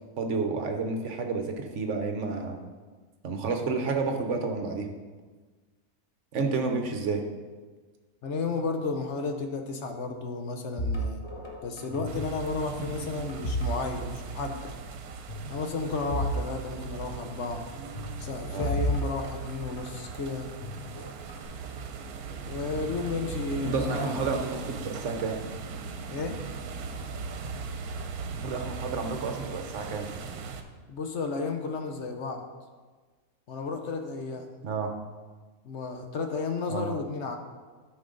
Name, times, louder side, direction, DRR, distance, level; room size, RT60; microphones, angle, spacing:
voice 1, 0.2-2.6 3.2-4.9 6.3-7.2 18.5-18.7 23.6-25.4 28.3-30.1 34.6-34.9 36.7-36.9, right 4 dB, 60° right, 4 dB, 1.1 m, -30 dB
voice 2, 8.2-11.2 11.6-14.8 15.5-17.7 18.2-20.5 22.5-24.2 26.1-26.4 30.9-32.4 33.5-34.5 35.6-37.4, left 4 dB, 55° left, 5 dB, 1.0 m, -33 dB
sound 1, 10.8-12.3 12.6-14.2 14.4-14.7 15.3-16.4 16.7-16.8 17.9-20.0 20.6-21.4, equal, 20° left, 1.1 m, -33 dB
sound 2, 12.1-30.6, right 5 dB, 75° right, 1.2 m, -39 dB
12.0 x 5.4 x 3.8 m, 1.4 s
omnidirectional pair, 1.6 m